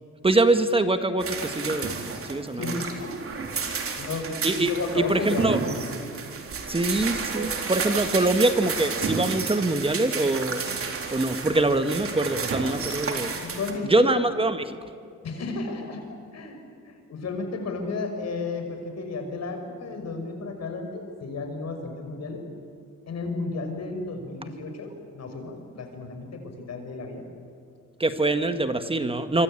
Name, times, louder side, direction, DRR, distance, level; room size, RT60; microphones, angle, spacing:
voice 1, 0.2-1.9 2.2-2.6 4.4-5.6 6.7-10.6 11.1-13.3 13.9-14.8 28.0-29.4, right 2 dB, 20° right, 9 dB, 1.6 m, -24 dB
sound 1, 1.2-13.7, right 5 dB, 45° right, 3.9 m, -31 dB
voice 2, 2.5-3.2 3.6-4.3 4.7-5.9 13.4-14.1 15.2-16.0 16.3-16.6 16.8-22.4 23.1-27.2, left 3 dB, 60° left, 5 dB, 6.1 m, -33 dB
26.0 x 24.5 x 9.0 m, 2.3 s
cardioid pair, 90°, 30 cm